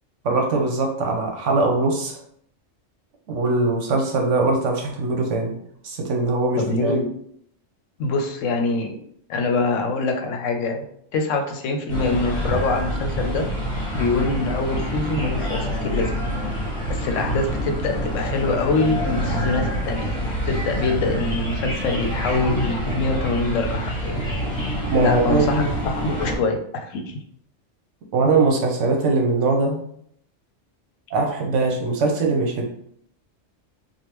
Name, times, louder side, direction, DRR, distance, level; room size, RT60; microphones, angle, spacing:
voice 1, 0.2-2.2 3.3-5.6 5.8-7.0 24.9-25.7 28.1-29.8 31.1-32.6, right 3 dB, 70° right, 1 dB, 1.0 m, -21 dB
voice 2, 6.6-7.1 8.0-8.9 9.3-10.8 11.1-13.5 13.9-16.1 16.9-20.1 20.5-24.2 25.0-27.2, left 3 dB, 75° left, 4 dB, 0.9 m, -24 dB
sound 1, 11.9-26.4, equal, 25° left, 1.2 m, -26 dB
3.4 x 2.4 x 2.9 m, 0.67 s
omnidirectional pair, 1.3 m